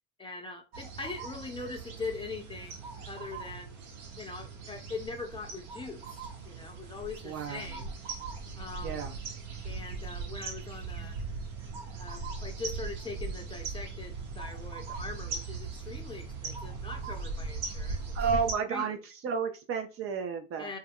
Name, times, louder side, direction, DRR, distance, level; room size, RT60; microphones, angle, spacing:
voice 1, 0.2-2.8 3.1-3.8 4.2-7.9 8.6-9.1 9.6-11.2 12.0-18.0 18.7-18.9 20.6-20.8, left 4 dB, 15° left, 0.6 m, -41 dB
sound 1, 0.7-18.5, right 4 dB, 60° right, 1.0 m, -39 dB
voice 2, 7.2-7.8 8.8-9.2 18.1-20.7, right 6 dB, 35° right, 0.5 m, -32 dB
2.3 x 2.1 x 3.5 m
hypercardioid pair, 85°, 40 cm